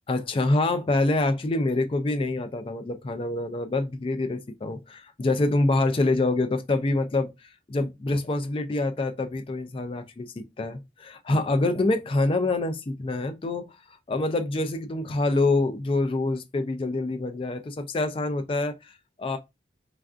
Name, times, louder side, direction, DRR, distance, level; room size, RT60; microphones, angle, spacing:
voice 1, 0.1-7.3 7.7-13.7 14.1-18.9 19.2-19.4, left 2 dB, 30° left, 0.3 m, -26 dB
3.4 x 2.4 x 2.4 m
head